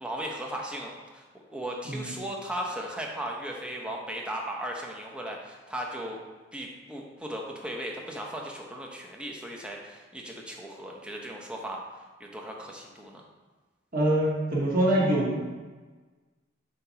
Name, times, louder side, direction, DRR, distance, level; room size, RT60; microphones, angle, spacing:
voice 1, 0.0-6.2 6.5-11.8 12.2-13.2, right 1 dB, 5° right, -1 dB, 0.8 m, -37 dB
voice 2, 13.9-15.4, right 1 dB, 45° right, -6 dB, 1.7 m, -24 dB
7.6 x 3.0 x 5.7 m, 1.3 s
head